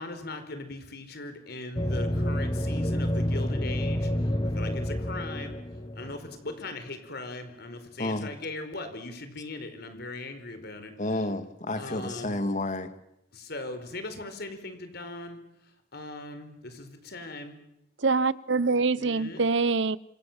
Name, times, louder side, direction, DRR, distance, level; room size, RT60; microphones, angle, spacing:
voice 1, 0.0-4.1 4.5-5.6 6.0-10.9 11.8-12.4 13.3-15.4 15.9-17.5 19.0-19.4, left 2 dB, 55° left, 9 dB, 4.7 m, -39 dB
sound 1, 1.8-6.5, equal, 25° left, 1.2 m, -29 dB
voice 2, 8.0-8.3 11.0-12.9, left 2 dB, 40° left, 10 dB, 2.0 m, -30 dB
voice 3, 18.0-20.0, right 4 dB, 65° right, 19 dB, 1.0 m, -24 dB
27.5 x 27.5 x 7.5 m, 0.82 s
head